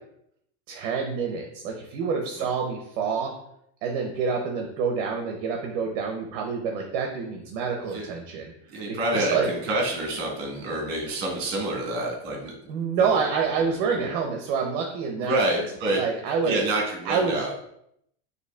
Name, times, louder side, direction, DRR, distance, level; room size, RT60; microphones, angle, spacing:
voice 1, 0.7-3.3 3.8-8.5 9.1-9.5 12.7-15.4 15.8-16.5 17.0-17.4, right 5 dB, 50° right, 2 dB, 0.6 m, -27 dB
voice 2, 8.7-12.5 13.0-13.1 14.0-14.1 15.2-16.0 16.4-17.5, right 1 dB, 35° right, -1 dB, 1.2 m, -27 dB
6.7 x 2.7 x 2.2 m, 0.74 s
cardioid pair, 180°, 36 cm